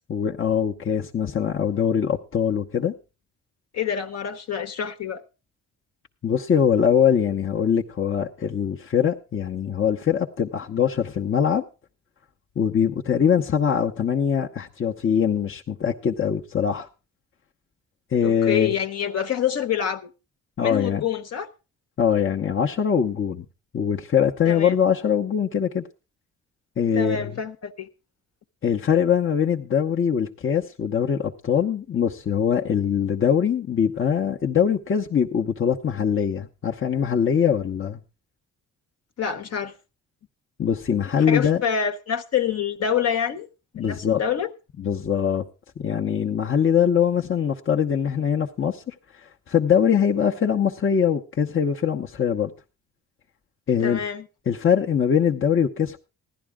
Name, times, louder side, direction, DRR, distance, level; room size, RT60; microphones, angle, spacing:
voice 1, 0.1-2.9 6.2-11.6 12.6-16.9 18.1-18.8 20.6-21.0 22.0-23.4 23.7-25.8 26.8-27.3 28.6-38.0 40.6-41.6 43.8-44.2 44.8-45.4 45.8-48.9 49.5-52.5 53.7-54.0 54.5-56.0, left 8 dB, 40° left, 1.0 m, -22 dB
voice 2, 3.7-5.2 18.2-20.1 20.6-21.5 24.4-24.7 26.9-27.9 39.2-39.7 41.2-43.5 43.7-44.5 53.8-54.3, left 8 dB, 60° left, 1.3 m, -26 dB
15.5 x 11.5 x 3.6 m
cardioid pair, 90°, 30 cm